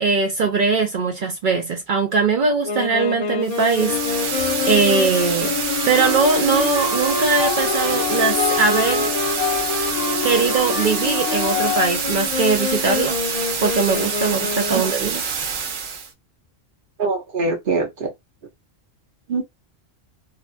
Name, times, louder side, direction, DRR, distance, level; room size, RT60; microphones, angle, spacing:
voice 1, 0.0-4.4 4.7-5.6 5.9-9.1 10.2-13.2 13.6-15.2, right 4 dB, 60° right, 0.5 m, -21 dB
Wind instrument woodwind instrument, 2.6-15.1, left 4 dB, 80° left, 0.3 m, -27 dB
sound 1, 3.4-16.1, right 5 dB, 80° right, 1.1 m, -26 dB
sound 2, 3.9-11.9, left 10 dB, 50° left, 0.9 m, -27 dB
voice 2, 17.0-18.1 19.3-19.4, right 3 dB, 45° right, 0.9 m, -23 dB
2.7 x 2.3 x 2.4 m
omnidirectional pair, 1.3 m